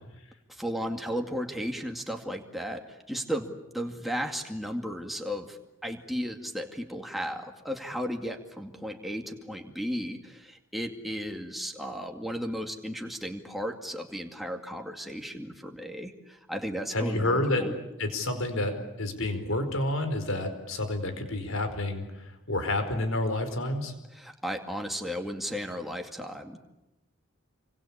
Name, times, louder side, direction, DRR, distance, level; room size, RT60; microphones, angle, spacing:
voice 1, 0.5-5.6 5.8-17.8 24.1-26.6, equal, ahead, 2 dB, 2.3 m, -35 dB
voice 2, 16.9-17.7 18.0-18.7 19.0-22.0 22.5-23.9, left 2 dB, 75° left, 8 dB, 4.8 m, -29 dB
27.5 x 25.0 x 8.5 m, 0.94 s
head